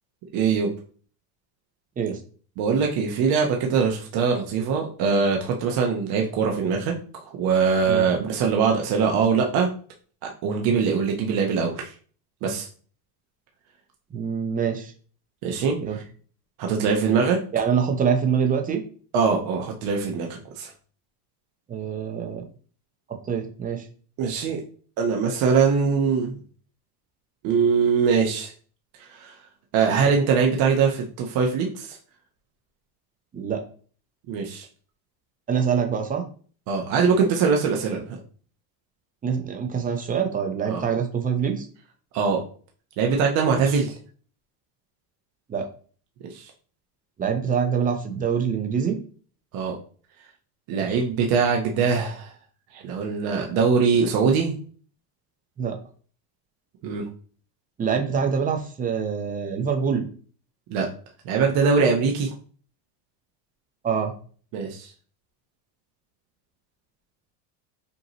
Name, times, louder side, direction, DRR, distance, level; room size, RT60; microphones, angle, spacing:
voice 1, 0.3-0.7 2.6-9.7 10.4-11.9 12.4-12.7 15.4-16.0 16.6-17.4 19.1-20.3 20.6-20.7 24.2-24.6 25.0-26.4 27.4-28.5 29.2-29.3 29.7-32.0 34.3-34.7 36.7-38.2 40.7-40.9 42.1-42.4 43.0-43.9 46.3-46.5 49.5-49.8 50.7-52.3 52.7-54.5 56.8-57.0 60.7-60.9 61.2-62.3 64.5-64.9, right 5 dB, 50° right, 1 dB, 0.9 m, -22 dB
voice 2, 14.1-14.9 15.8-16.0 17.5-18.8 21.7-22.4 23.1-23.8 33.3-33.6 35.5-36.2 39.2-41.7 45.5-45.7 47.2-49.0 50.7-51.0 55.6-55.8 57.8-60.0 63.8-64.1, right 7 dB, 20° right, 5 dB, 0.6 m, -25 dB
5.3 x 2.8 x 2.9 m, 0.43 s
supercardioid pair, 135°, 46 cm